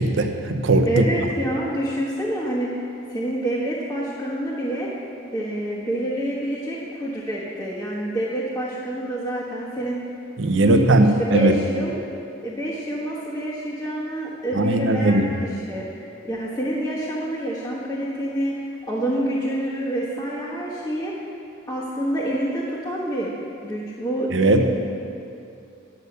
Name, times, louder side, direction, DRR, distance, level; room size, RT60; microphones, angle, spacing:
voice 1, 0.0-1.0 10.4-11.5 14.5-15.3 24.3-24.6, right 2 dB, 65° right, 6 dB, 0.7 m, -18 dB
voice 2, 0.9-2.7 3.1-4.9 5.3-10.0 10.5-10.8 11.3-12.0 12.4-21.1 21.7-23.3 23.6-24.6, right 1 dB, 15° left, -9 dB, 1.3 m, -27 dB
10.5 x 6.6 x 6.7 m, 2.6 s
head